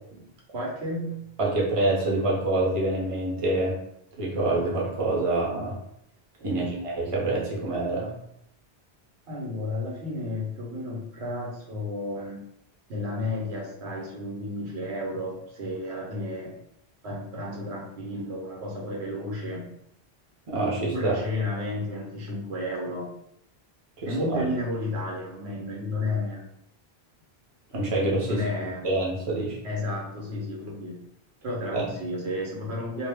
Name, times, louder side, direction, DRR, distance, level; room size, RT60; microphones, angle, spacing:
voice 1, 0.5-1.3 6.4-6.9 9.3-12.4 12.9-16.5 17.0-19.7 20.9-23.1 24.0-26.4 28.3-28.9 29.6-31.0 31.4-33.1, left 1 dB, 85° right, -3 dB, 1.1 m, -32 dB
voice 2, 1.4-3.8 4.2-5.7 6.4-8.1 20.5-21.2 24.0-24.4 27.7-28.4 28.8-29.6 31.7-31.8, right 2 dB, 35° right, -5 dB, 0.8 m, -26 dB
2.3 x 2.0 x 3.3 m, 0.75 s
omnidirectional pair, 1.1 m